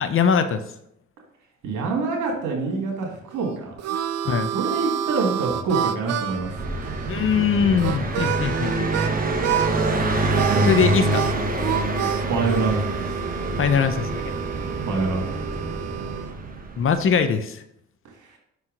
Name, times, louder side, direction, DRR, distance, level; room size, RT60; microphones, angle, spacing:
voice 1, 0.0-0.6 4.2-4.5 7.1-8.9 10.6-11.3 13.6-14.3 16.8-17.6, left 6 dB, 45° left, 10 dB, 0.6 m, -21 dB
voice 2, 1.6-3.8 4.5-6.5 10.5-11.0 12.3-13.0 14.9-15.3, right 4 dB, 80° right, 0 dB, 1.9 m, -26 dB
Harmonica, 3.3-9.1 9.4-9.9 10.3-16.3, right 10 dB, 55° right, 0.4 m, -29 dB
Car passing by, 6.4-17.0, right 2 dB, 30° right, 0.9 m, -26 dB
5.5 x 4.6 x 3.8 m, 0.75 s
cardioid pair, 90°, 30 cm